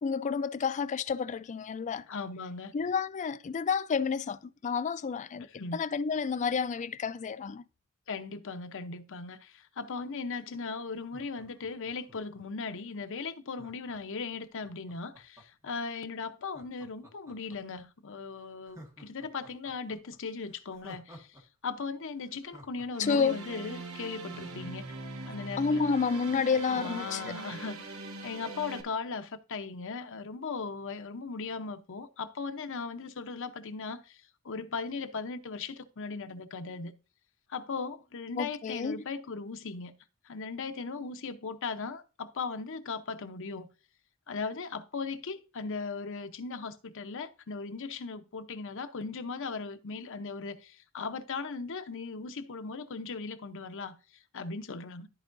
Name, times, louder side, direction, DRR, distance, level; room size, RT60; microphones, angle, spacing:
voice 1, 0.0-2.1 2.7-5.5 5.7-7.6 23.0-23.4 25.6-27.2 38.4-39.0, left 5 dB, 35° left, 0.3 m, -30 dB
voice 2, 2.1-2.7 5.5-5.8 8.1-24.9 25.3-25.8 26.7-36.9 37.5-39.9 40.2-43.7 44.3-53.9 54.3-55.1, left 4 dB, 65° left, 0.7 m, -38 dB
Laughter, 10.9-12.6 13.5-15.7 16.4-17.8 18.2-18.3 18.6-21.4 21.7-21.8 22.2-25.1 25.5-25.6 25.8-27.6 27.9-28.0, equal, 15° right, 1.5 m, -54 dB
sound 1, 22.9-28.8, right 3 dB, 70° right, 1.0 m, -42 dB
13.0 x 4.6 x 2.5 m
head